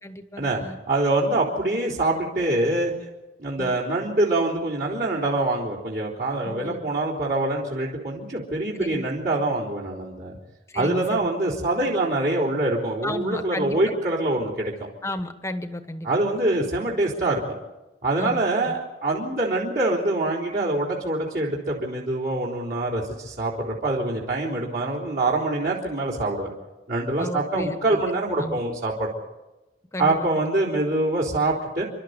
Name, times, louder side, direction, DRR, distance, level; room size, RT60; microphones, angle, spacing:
voice 1, 0.0-0.8 3.6-3.8 6.4-6.8 8.7-9.1 10.7-11.3 13.0-13.8 15.0-16.1 18.2-18.7 27.2-28.0 28.4-28.6 29.9-30.4, left 1 dB, 15° left, 9 dB, 1.2 m, -33 dB
voice 2, 0.9-2.9 3.4-10.4 10.7-14.9 16.0-17.6 18.0-26.5 26.9-29.1 30.0-31.8, right 2 dB, 50° right, -5 dB, 3.7 m, -25 dB
29.0 x 12.5 x 8.2 m, 1.0 s
head